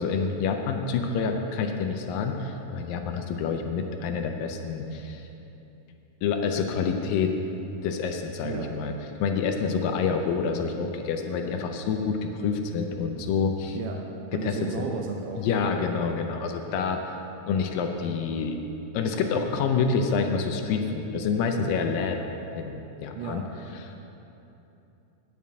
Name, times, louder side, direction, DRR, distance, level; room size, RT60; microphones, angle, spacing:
voice 1, 0.0-5.3 6.2-7.3 7.8-8.9 9.2-13.8 14.4-14.6 15.4-17.2 17.5-18.6 18.9-23.4 23.8-24.0, left 5 dB, 80° left, 4 dB, 2.3 m, -27 dB
voice 2, 13.7-15.7 23.2-23.7, right 5 dB, 75° right, 2 dB, 2.0 m, -34 dB
9.2 x 7.2 x 8.4 m, 2.9 s
omnidirectional pair, 4.3 m